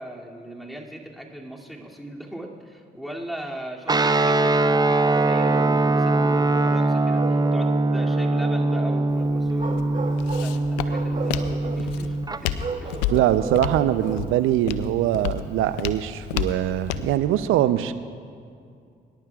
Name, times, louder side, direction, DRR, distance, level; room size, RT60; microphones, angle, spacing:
voice 1, 0.0-12.2 12.4-13.0, right 1 dB, ahead, -3 dB, 2.5 m, -38 dB
Guitar, 3.9-12.4, right 2 dB, 20° right, 0.6 m, -22 dB
Bark, 5.1-6.7 7.1-8.9 9.5-10.5 10.9-11.8 12.6-14.3, right 4 dB, 35° right, 1.7 m, -35 dB
Walk footsteps, 9.1-17.2, left 10 dB, 90° left, 0.5 m, -32 dB
voice 2, 13.1-17.9, right 12 dB, 70° right, 12 dB, 0.6 m, -22 dB
23.0 x 11.0 x 2.4 m, 2.3 s
hypercardioid pair, 45°, 21 cm